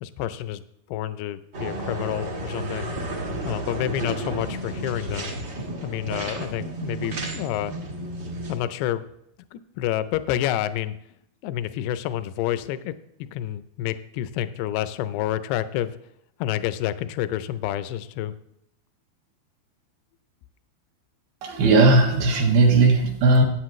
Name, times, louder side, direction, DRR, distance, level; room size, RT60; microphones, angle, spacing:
voice 1, 0.0-0.6 0.9-2.9 3.4-5.3 5.8-7.7 8.5-9.0 9.5-11.0 11.4-12.9 13.2-15.9 16.4-18.3, left 12 dB, 85° left, 13 dB, 2.6 m, -29 dB
sound 1, 1.5-8.6, right 1 dB, 50° right, 1.2 m, -32 dB
voice 2, 21.4-23.4, right 3 dB, 70° right, 1 dB, 3.2 m, -17 dB
17.5 x 8.0 x 3.1 m, 0.76 s
omnidirectional pair, 4.6 m